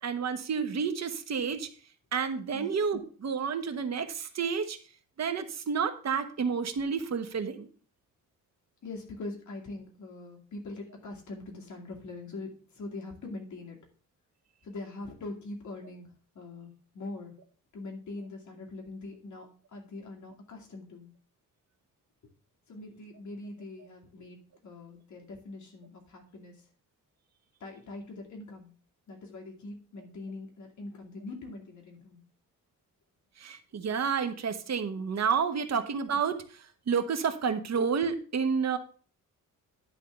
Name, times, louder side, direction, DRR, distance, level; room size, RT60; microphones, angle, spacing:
voice 1, 0.0-1.7 2.1-4.8 5.2-7.7 33.4-38.8, right 6 dB, 50° right, 9 dB, 1.2 m, -30 dB
voice 2, 8.8-13.8 14.6-16.1 16.3-17.3 17.7-21.1 22.7-26.6 27.6-28.7 29.1-32.2 35.7-35.8, left 2 dB, 60° left, -1 dB, 2.4 m, -43 dB
11.0 x 3.7 x 6.5 m, 0.41 s
cardioid pair, 130°, 33 cm